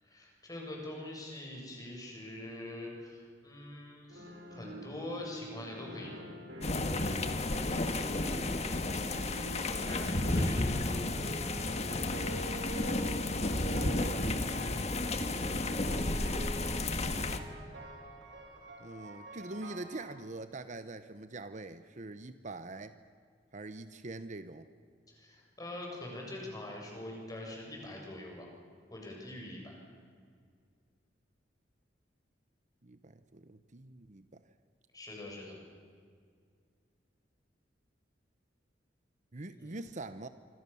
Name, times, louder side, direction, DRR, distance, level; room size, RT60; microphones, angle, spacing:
voice 1, 0.0-6.3 9.6-11.0 16.2-16.6 25.1-28.5 28.9-29.8 34.9-35.6 39.5-39.8, left 1 dB, 20° left, -1 dB, 7.6 m, -44 dB
sound 1, 4.1-20.1, right 1 dB, 80° right, 6.3 m, -46 dB
sound 2, 6.6-17.4, left 2 dB, 40° left, 1.6 m, -32 dB
voice 2, 7.8-9.4 14.2-15.0 18.8-22.9 23.5-24.7 32.8-34.4 39.3-40.3, right 2 dB, 45° right, 11 dB, 1.0 m, -45 dB
26.0 x 25.5 x 7.1 m, 2.1 s
head